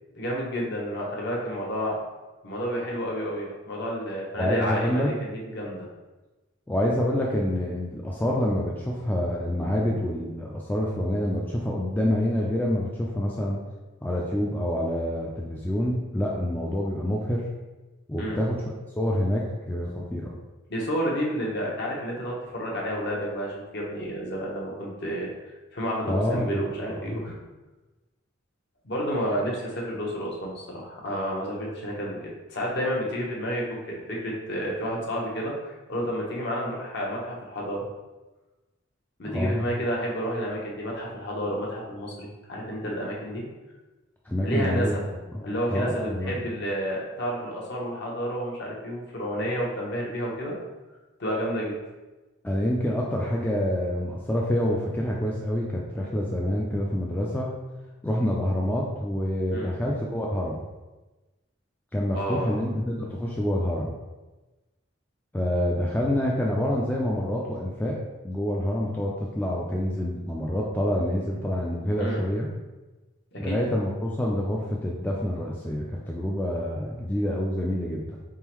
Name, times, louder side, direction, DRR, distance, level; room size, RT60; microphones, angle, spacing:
voice 1, 0.1-2.0 2.4-5.9 18.2-18.4 20.7-25.3 25.7-27.4 28.8-37.8 39.2-43.4 44.4-45.0 45.4-50.6 51.2-51.7 59.5-59.7 62.1-62.6 72.0-72.2 73.4-73.5, equal, 55° left, -3 dB, 1.0 m, -30 dB
voice 2, 4.4-5.2 6.7-13.6 14.0-17.5 18.1-20.3 26.1-27.2 39.2-39.6 44.3-45.0 45.3-46.4 52.4-57.5 58.0-60.6 61.9-63.9 65.3-68.0 68.2-72.5 73.4-78.2, equal, 10° left, -3 dB, 0.3 m, -27 dB
4.1 x 3.7 x 3.0 m, 1.1 s
head